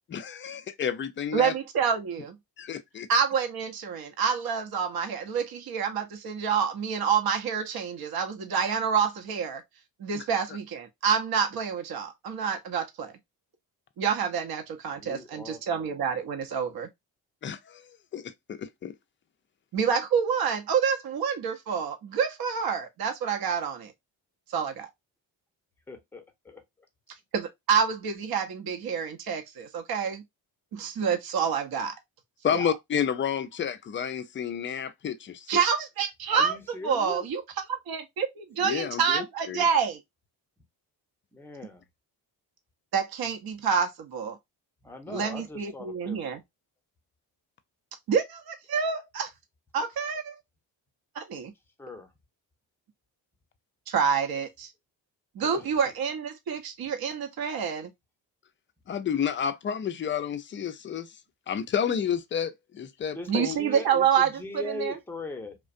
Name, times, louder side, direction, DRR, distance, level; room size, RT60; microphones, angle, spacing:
voice 1, 0.1-1.5 2.6-3.1 10.1-10.2 17.4-18.9 32.4-35.6 38.6-39.6 45.1-45.2 58.9-61.1 61.5-63.6, left 8 dB, 25° left, 0.4 m, -31 dB
voice 2, 1.3-2.4 3.1-9.6 10.0-13.1 14.0-16.9 19.7-23.9 24.5-24.9 27.3-30.2 30.7-31.9 32.5-32.6 35.5-36.6 36.8-37.4 37.9-40.0 42.9-44.4 45.1-46.4 48.1-49.3 49.7-50.4 51.1-51.5 53.9-54.7 55.3-57.9 63.3-65.0, right 7 dB, 45° right, 0.7 m, -28 dB
voice 3, 14.9-16.0 25.9-26.6 36.3-37.2 41.3-41.9 44.8-46.3 51.8-52.1 55.4-55.7 63.1-65.6, left 2 dB, 5° left, 0.8 m, -40 dB
2.4 x 2.1 x 2.4 m
hypercardioid pair, 45°, 49 cm